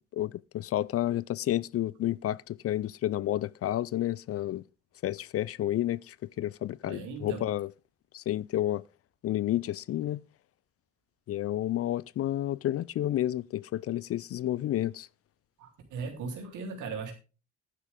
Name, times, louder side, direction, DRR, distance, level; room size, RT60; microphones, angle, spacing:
voice 1, 0.1-4.6 5.0-7.7 8.1-8.8 9.2-10.2 11.3-15.1, left 13 dB, 50° left, 0.4 m, -30 dB
voice 2, 6.9-7.4 15.6-17.1, right 4 dB, 75° right, 3.8 m, -38 dB
11.0 x 9.9 x 3.7 m
supercardioid pair, 65°, 31 cm